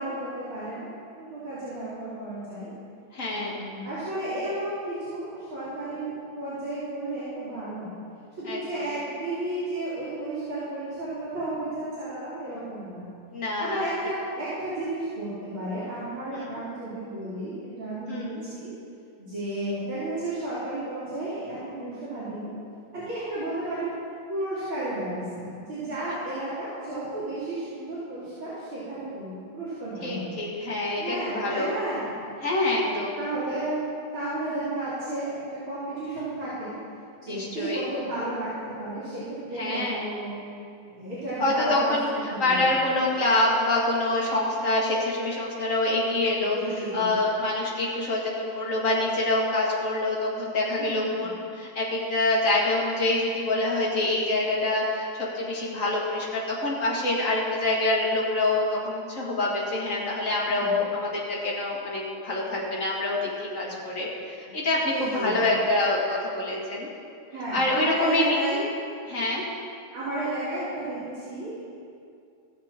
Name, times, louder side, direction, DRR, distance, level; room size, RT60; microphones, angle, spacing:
voice 1, 0.0-2.7 3.3-7.9 8.4-13.1 13.6-18.7 19.2-22.5 22.9-23.9 24.3-30.3 31.0-32.1 32.8-33.8 34.1-36.7 37.2-40.4 40.8-42.7 46.5-47.1 50.8-51.3 60.5-60.8 63.6-63.7 64.9-65.6 67.3-68.6 69.9-71.6, right 1 dB, 65° right, -13 dB, 3.8 m, -33 dB
voice 2, 3.1-3.6 8.4-8.9 13.3-13.9 16.3-16.6 18.1-18.4 30.0-31.7 32.4-33.2 37.2-37.9 39.6-40.1 41.4-46.6 46.9-66.9 67.5-68.4 69.1-69.4, left 2 dB, 40° left, -5 dB, 2.2 m, -26 dB
16.0 x 7.2 x 3.7 m, 2.5 s
omnidirectional pair, 2.4 m